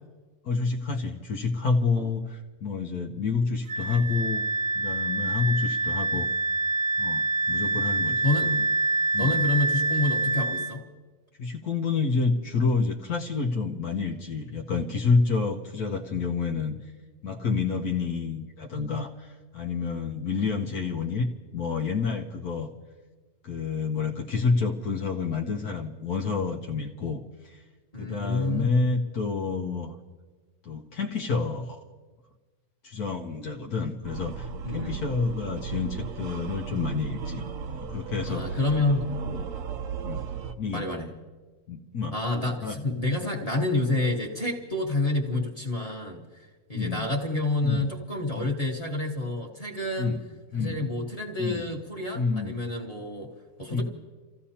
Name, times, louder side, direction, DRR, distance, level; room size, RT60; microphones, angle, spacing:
voice 1, 0.4-4.4 4.7-6.3 7.0-8.6 9.1-9.3 11.4-16.8 17.2-21.3 21.5-22.7 23.4-27.6 28.0-29.9 30.6-31.8 32.8-38.6 40.0-40.2 40.6-40.8 41.7-42.1 42.6-42.8 43.2-43.3 46.7-47.1 47.6-47.9 48.4-48.5 50.0-50.2 50.5-50.8 51.4-51.6 52.1-52.5 53.7-53.8, left 4 dB, 70° left, 1 dB, 1.4 m, -28 dB
Wind instrument woodwind instrument, 3.7-10.7, right 3 dB, 85° right, 1.5 m, -26 dB
voice 2, 7.6-8.6 9.2-10.9 27.9-28.8 34.6-35.0 38.3-39.4 40.7-41.1 42.1-50.2 50.5-53.3 53.6-53.8, left 2 dB, 25° left, -1 dB, 1.5 m, -29 dB
sound 1, 34.0-40.5, right 5 dB, 65° right, 1.0 m, -35 dB
29.5 x 15.5 x 2.8 m, 1.3 s
omnidirectional pair, 1.7 m